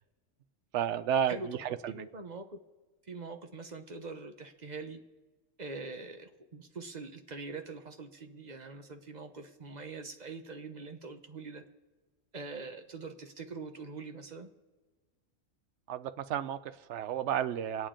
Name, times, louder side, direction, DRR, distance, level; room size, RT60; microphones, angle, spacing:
voice 1, 0.7-2.1 15.9-17.9, right 9 dB, 65° right, 0.8 m, -32 dB
voice 2, 1.3-2.6 3.0-5.0 5.6-11.6 12.3-14.5, right 3 dB, 35° right, 0.9 m, -43 dB
26.0 x 8.8 x 3.8 m
omnidirectional pair, 1.4 m